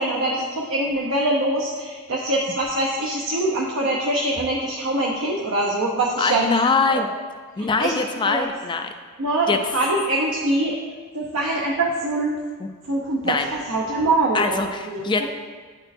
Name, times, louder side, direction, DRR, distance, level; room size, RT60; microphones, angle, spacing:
voice 1, 0.0-6.5 6.9-7.0 7.6-8.5 9.2-10.8 11.1-12.4 12.9-15.3, right 1 dB, 70° right, -3 dB, 0.8 m, -24 dB
voice 2, 6.2-7.1 7.6-8.8 9.5-9.6 12.6-12.7 13.2-13.5 14.3-15.2, left 4 dB, 20° left, 6 dB, 0.3 m, -22 dB
9.7 x 4.3 x 2.6 m, 1.5 s
head